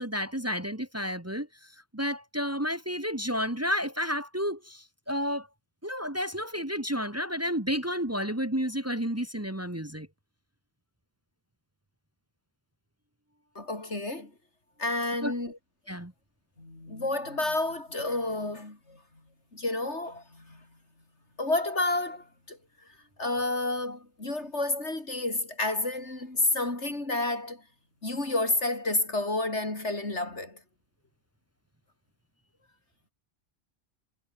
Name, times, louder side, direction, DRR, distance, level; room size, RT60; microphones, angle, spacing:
voice 1, 0.0-5.5 5.8-10.1 15.2-15.3 15.9-16.1, equal, 15° right, 1.6 m, -31 dB
voice 2, 13.6-14.3 14.8-15.6 16.6-19.0 19.5-20.7 21.4-27.6 28.0-30.6, left 2 dB, 85° left, 5.2 m, -30 dB
omnidirectional pair, 1.1 m